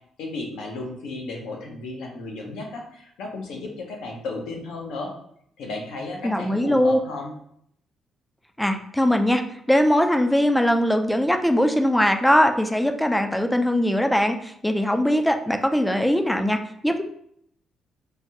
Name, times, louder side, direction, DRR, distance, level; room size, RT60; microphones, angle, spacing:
voice 1, 0.2-5.1 5.6-7.3, left 2 dB, 85° left, 1 dB, 0.7 m, -34 dB
voice 2, 6.2-7.0 8.6-9.4 9.7-17.0, equal, 5° left, 6 dB, 0.3 m, -21 dB
3.2 x 2.2 x 2.8 m, 0.70 s
cardioid pair, 90°, 0 cm